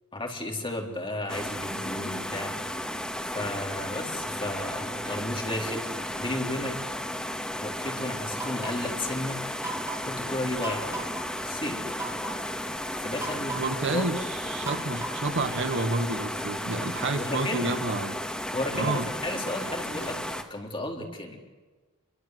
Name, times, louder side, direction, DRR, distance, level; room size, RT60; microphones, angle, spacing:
voice 1, 0.1-2.5 3.3-5.9 6.2-6.8 7.6-9.4 10.0-11.1 11.4-11.8 12.9-13.6 13.9-14.1 17.1-17.8 18.5-21.4, left 1 dB, 25° left, 1 dB, 4.0 m, -33 dB
sound 1, 1.3-20.4, left 1 dB, 5° left, 2.1 m, -34 dB
sound 2, 8.4-8.9 9.6-10.1 10.6-11.2 11.9-12.4 13.2-13.8 14.6-15.5, right 2 dB, 15° right, 4.3 m, -37 dB
voice 2, 13.5-18.2 18.7-19.0, right 2 dB, 55° right, 7 dB, 1.8 m, -29 dB
29.0 x 23.5 x 8.0 m, 1.3 s
head